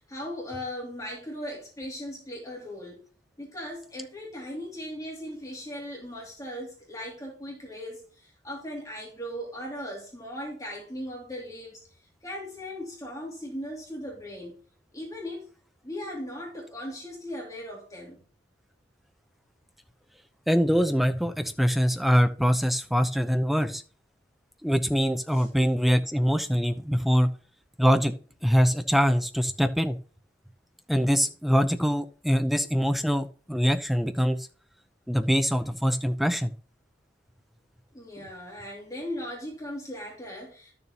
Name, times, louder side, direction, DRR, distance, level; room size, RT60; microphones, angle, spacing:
voice 1, 0.0-3.1 3.4-11.8 12.2-14.6 14.9-15.5 15.8-18.2 25.3-25.5 37.9-40.7, equal, 20° left, 2.6 m, -38 dB
voice 2, 20.5-23.8 24.6-27.3 27.8-28.1 28.4-30.0 30.9-34.5 35.1-36.5, equal, ahead, 0.6 m, -23 dB
12.0 x 6.9 x 3.0 m
head